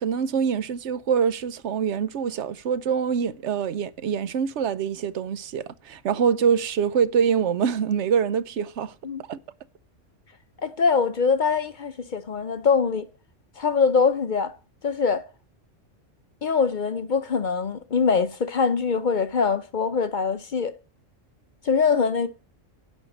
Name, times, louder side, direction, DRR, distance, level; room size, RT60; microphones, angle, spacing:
voice 1, 0.0-8.9 9.3-9.4, right 7 dB, 65° right, 1.0 m, -25 dB
voice 2, 10.6-13.1 13.6-14.5 14.8-15.2 16.4-20.7 21.6-22.3, left 5 dB, 50° left, 0.7 m, -23 dB
11.0 x 5.6 x 7.7 m
omnidirectional pair, 1.3 m